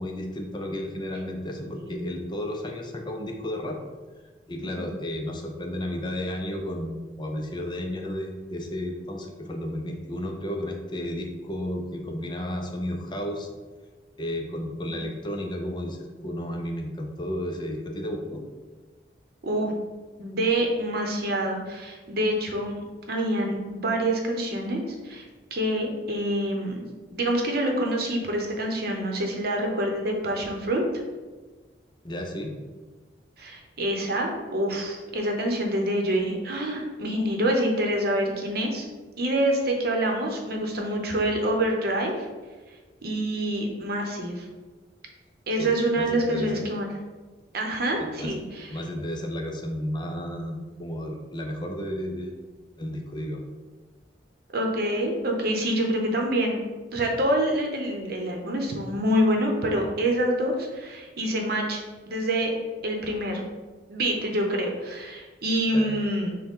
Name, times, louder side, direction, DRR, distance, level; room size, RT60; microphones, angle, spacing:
voice 1, 0.0-3.8 4.5-13.5 14.2-18.4 32.0-32.5 45.6-46.6 48.0-48.3 48.7-52.3 52.8-53.5 65.7-65.9, left 1 dB, 25° left, 2 dB, 0.5 m, -33 dB
voice 2, 1.7-2.1 19.4-19.7 20.2-22.7 23.1-25.2 25.5-26.9 27.1-30.9 33.4-38.8 39.2-42.3 43.0-44.4 45.5-46.9 47.5-48.7 54.5-56.6 56.9-61.8 62.1-62.5 62.8-63.4 63.9-66.3, right 1 dB, 60° right, 1 dB, 0.8 m, -26 dB
6.4 x 2.2 x 3.6 m, 1.3 s
head